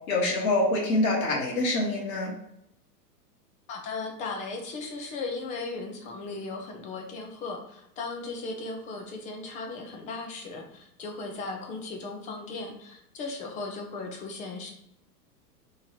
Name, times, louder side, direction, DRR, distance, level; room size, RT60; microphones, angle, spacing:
voice 1, 0.1-2.3, left 2 dB, 60° left, -3 dB, 1.2 m, -25 dB
voice 2, 3.7-14.7, left 3 dB, 15° left, 2 dB, 0.4 m, -37 dB
3.6 x 3.1 x 4.3 m, 0.78 s
hypercardioid pair, 105°, 48 cm